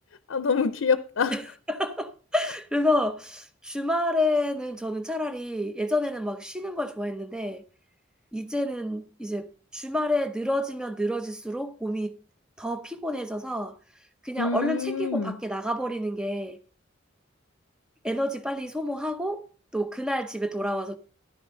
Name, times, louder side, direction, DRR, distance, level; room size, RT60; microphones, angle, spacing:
voice 1, 0.3-1.4 14.4-15.4, left 5 dB, 85° left, 0.6 m, -26 dB
voice 2, 1.3-7.6 8.3-9.5 9.7-12.2 12.6-13.8 14.2-16.6 18.0-19.4 19.7-21.0, left 1 dB, 5° right, 0.8 m, -29 dB
11.5 x 10.0 x 3.9 m
head